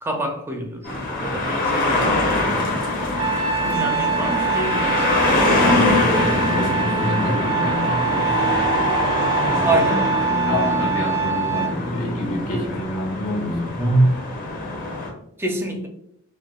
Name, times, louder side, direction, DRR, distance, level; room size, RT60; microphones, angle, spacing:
voice 1, 0.0-2.7 3.4-5.1 5.5-6.0 9.6-10.3 13.8-14.2 15.4-15.9, right 1 dB, 10° right, 0.4 m, -25 dB
sound 1, 0.8-15.1, left 2 dB, 45° left, 1.0 m, -23 dB
Trumpet, 3.2-11.7, right 6 dB, 70° right, 0.5 m, -24 dB
voice 2, 5.7-9.8 10.5-14.0, left 1 dB, 80° left, 1.1 m, -28 dB
4.7 x 2.2 x 2.2 m
head